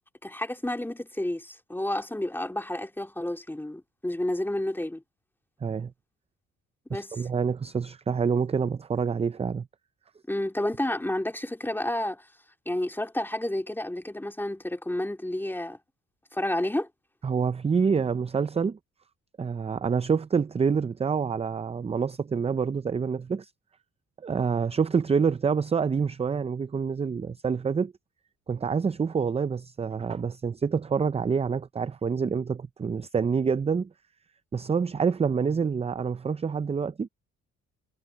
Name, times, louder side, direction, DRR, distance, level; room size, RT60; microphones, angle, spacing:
voice 1, 0.2-5.0 6.9-7.3 10.3-12.3 12.7-15.8 16.3-16.9, left 1 dB, 5° left, 2.7 m, -30 dB
voice 2, 5.6-5.9 6.9-9.7 17.2-18.8 19.4-23.5 24.2-27.9 28.5-33.9 34.5-37.1, right 6 dB, 20° right, 0.5 m, -27 dB
cardioid pair, 90°, 30 cm